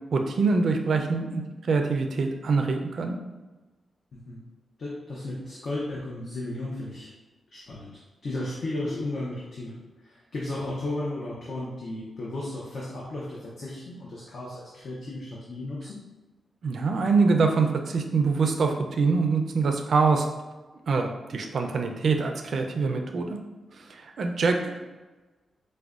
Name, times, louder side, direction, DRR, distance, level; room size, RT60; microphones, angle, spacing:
voice 1, 0.1-3.2 16.6-20.3 20.9-23.4 23.7-24.8, right 4 dB, 60° right, 4 dB, 0.4 m, -24 dB
voice 2, 4.1-4.4 4.8-7.1 7.5-16.0, left 2 dB, 60° left, -5 dB, 0.6 m, -34 dB
4.8 x 2.2 x 2.4 m, 1.2 s
cardioid pair, 105°, 0 cm